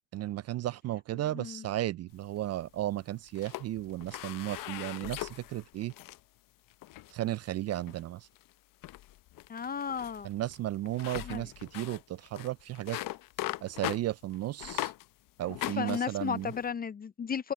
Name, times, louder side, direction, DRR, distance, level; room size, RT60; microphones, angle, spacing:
voice 1, 0.1-5.9 7.1-8.3 10.2-13.0 13.6-14.9 15.4-16.5, right 14 dB, 40° right, 0.4 m, -34 dB
voice 2, 1.3-1.6 9.5-10.3 11.2-11.5 15.8-17.5, left 7 dB, 20° left, 0.5 m, -34 dB
sound 1, 2.1-2.9 3.3-6.2 6.7-7.1 7.7-8.0 8.4-8.5 8.8-15.1 15.4-16.7, left 16 dB, 50° left, 0.8 m, -40 dB
open air
supercardioid pair, 95°, 42 cm